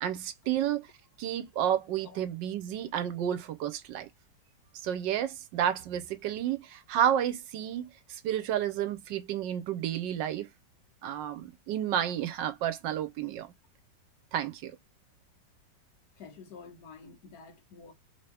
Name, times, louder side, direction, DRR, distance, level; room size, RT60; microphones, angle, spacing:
voice 1, 0.0-0.9 1.2-4.1 4.8-10.5 11.0-13.5 14.3-14.8, right 10 dB, 85° right, 1.3 m, -31 dB
voice 2, 16.2-17.9, left 5 dB, 65° left, 1.3 m, -49 dB
3.4 x 2.8 x 3.3 m
omnidirectional pair, 1.9 m